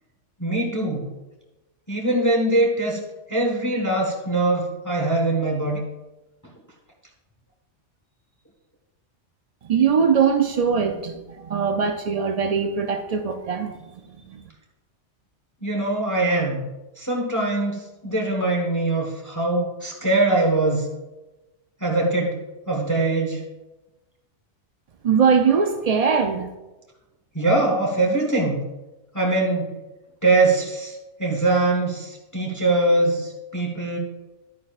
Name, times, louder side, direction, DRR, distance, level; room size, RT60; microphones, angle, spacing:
voice 1, 0.4-1.1 1.9-3.0 3.3-5.8 15.6-16.7 17.0-20.9 21.8-22.3 22.7-23.4 27.3-28.6 29.1-29.7 30.2-34.0, right 2 dB, 15° left, -1 dB, 1.2 m, -22 dB
voice 2, 9.6-13.7 14.3-14.4 25.0-26.5, right 6 dB, 65° right, 5 dB, 0.3 m, -21 dB
11.0 x 9.5 x 2.4 m, 1.1 s
omnidirectional pair, 1.3 m